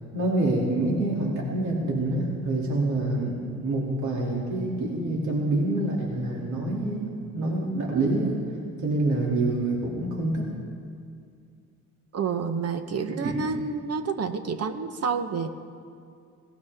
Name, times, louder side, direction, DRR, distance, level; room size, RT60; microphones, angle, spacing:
voice 1, 0.1-8.3 8.8-10.5 13.1-13.4, right 2 dB, 75° right, -3 dB, 2.8 m, -26 dB
voice 2, 12.1-15.5, right 5 dB, 55° right, 8 dB, 1.0 m, -29 dB
18.0 x 17.0 x 3.6 m, 2.3 s
cardioid pair, 90°, 30 cm